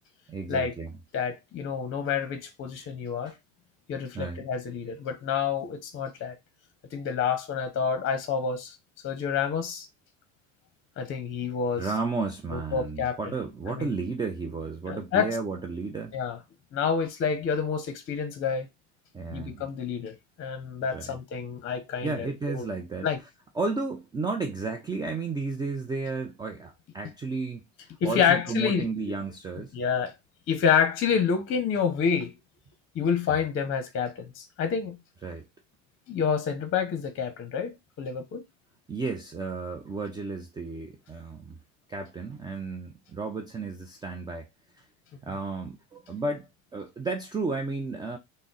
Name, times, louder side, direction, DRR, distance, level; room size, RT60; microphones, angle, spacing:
voice 1, 0.3-0.9 3.2-3.4 4.1-4.5 11.8-16.1 19.1-19.6 20.9-21.2 22.0-23.1 23.6-27.6 28.0-29.7 33.3-33.4 35.2-35.5 38.9-41.6 41.9-44.5 44.8-44.9 45.2-48.2, right 3 dB, 15° right, 0.4 m, -33 dB
voice 2, 1.1-3.3 3.9-6.4 6.9-8.8 9.0-9.9 11.0-11.9 12.5-13.2 13.7-13.9 14.9-15.4 16.1-16.4 16.7-18.7 19.3-22.7 23.0-23.2 28.0-28.9 29.7-30.1 30.5-32.3 32.9-35.0 36.1-38.4, left 6 dB, 40° left, 0.7 m, -28 dB
3.6 x 2.1 x 3.8 m
supercardioid pair, 110°, 34 cm